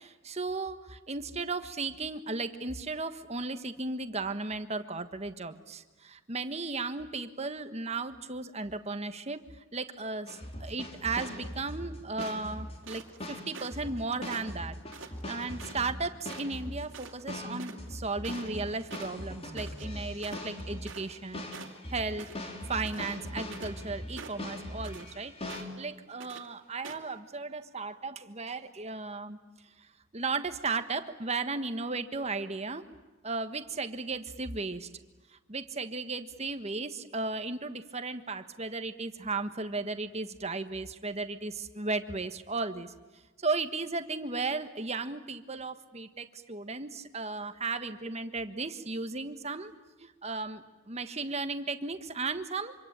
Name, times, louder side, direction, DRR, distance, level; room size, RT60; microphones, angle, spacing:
voice 1, 0.0-14.8 15.3-21.4 21.9-22.3 22.7-29.4 30.1-32.9 33.2-34.9 35.5-42.9 43.4-49.7 50.0-52.7, right 3 dB, 35° right, 10 dB, 1.5 m, -35 dB
sound 1, 10.3-25.6, left 1 dB, 30° left, 3.7 m, -41 dB
sound 2, 12.2-13.2 13.5-13.9 14.2-15.9 16.3-16.6 16.9-17.2 17.4-21.3 21.5-22.4 22.7-23.8 24.2-25.1 25.5-25.9 26.2-26.5 26.8-27.1, right 5 dB, 75° right, 2.6 m, -47 dB
26.0 x 25.5 x 8.9 m, 1.2 s
head